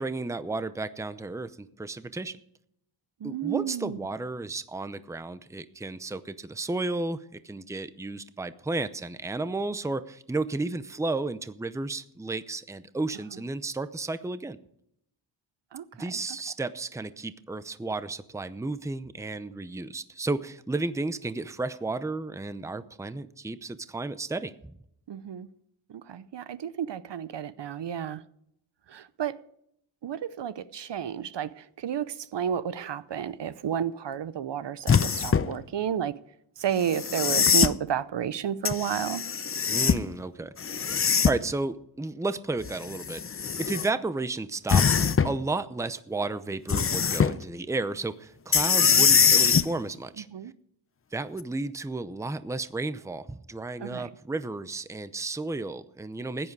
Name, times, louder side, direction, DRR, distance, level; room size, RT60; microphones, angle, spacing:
voice 1, 0.0-2.4 3.2-14.6 15.9-24.7 39.7-40.5 41.2-50.3 51.1-56.5, right 3 dB, 5° right, 0.6 m, -33 dB
voice 2, 3.2-4.0 15.7-15.9 16.1-16.2 25.1-25.5 25.9-28.2 28.9-29.4 30.0-36.1 36.6-39.2 50.3-50.5 53.8-54.1, right 9 dB, 60° right, 0.8 m, -31 dB
sound 1, 34.9-35.5 36.9-37.7 38.7-40.1 40.6-41.5 42.6-43.9 44.7-45.4 46.7-47.3 48.5-49.7 51.4-51.5, left 6 dB, 30° left, 0.5 m, -23 dB
16.0 x 10.0 x 4.7 m
wide cardioid pair, 90°, 47 cm